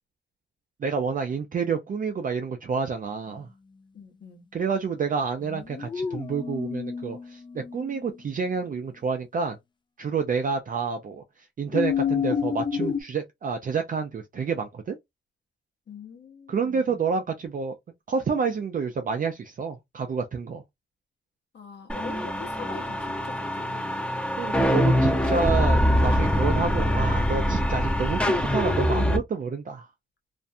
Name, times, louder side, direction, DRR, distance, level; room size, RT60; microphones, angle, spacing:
voice 1, 0.8-3.5 4.5-9.6 10.0-15.0 16.5-17.7 18.1-20.6 24.4-29.9, right 5 dB, 45° right, 0.4 m, -29 dB
voice 2, 3.9-4.4 15.9-17.0 21.5-24.0, left 5 dB, 60° left, 1.0 m, -43 dB
sound 1, 5.4-8.0 11.7-13.0, left 7 dB, 25° left, 0.3 m, -29 dB
sound 2, 21.9-29.2, equal, 5° left, 0.8 m, -23 dB
2.5 x 2.2 x 2.6 m
cardioid pair, 90°, 20 cm